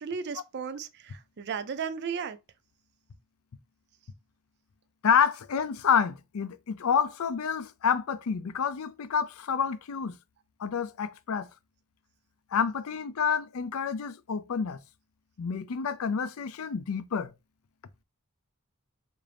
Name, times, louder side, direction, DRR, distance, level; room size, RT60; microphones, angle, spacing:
voice 1, 0.0-2.4, right 6 dB, 50° right, 0.4 m, -35 dB
voice 2, 5.0-10.2 10.6-11.5 12.5-14.8 15.4-17.3, left 7 dB, 70° left, 0.4 m, -28 dB
3.7 x 2.6 x 3.3 m
head